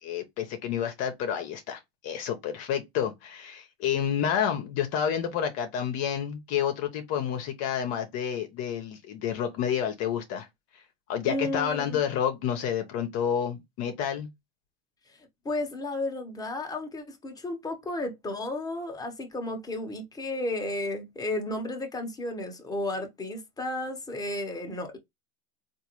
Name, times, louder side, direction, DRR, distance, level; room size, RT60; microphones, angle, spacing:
voice 1, 0.0-10.5 10.7-10.8 11.1-14.3, left 8 dB, 55° left, 0.9 m, -29 dB
voice 2, 11.2-12.0 15.4-25.0, left 2 dB, 10° left, 1.1 m, -33 dB
3.7 x 2.6 x 3.0 m
supercardioid pair, 115°, 30 cm